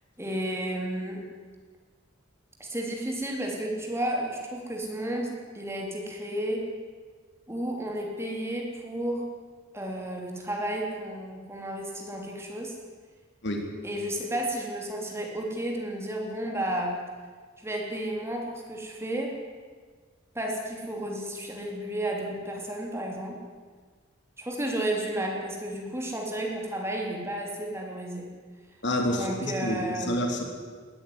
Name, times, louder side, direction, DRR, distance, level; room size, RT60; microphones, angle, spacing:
voice 1, 0.2-1.2 2.6-6.7 7.5-9.3 9.7-12.8 13.8-17.0 17.6-19.4 20.3-23.4 24.4-28.3 29.2-30.2, right 1 dB, 15° right, 0 dB, 3.8 m, -32 dB
voice 2, 28.8-30.4, left 1 dB, 65° left, 3 dB, 3.4 m, -28 dB
20.0 x 13.5 x 9.9 m, 1.5 s
head